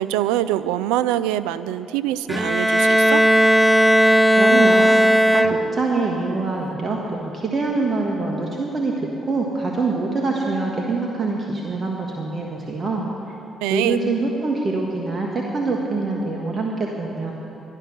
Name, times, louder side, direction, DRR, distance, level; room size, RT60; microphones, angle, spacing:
voice 1, 0.0-3.2 13.6-14.0, right 13 dB, 90° right, 15 dB, 0.3 m, -24 dB
Bowed string instrument, 2.3-6.0, equal, 5° right, 0.4 m, -16 dB
voice 2, 4.4-4.9 5.3-13.1 13.7-17.3, right 3 dB, 45° right, -1 dB, 1.6 m, -24 dB
12.0 x 11.5 x 6.0 m, 2.9 s
supercardioid pair, 60°, 0 cm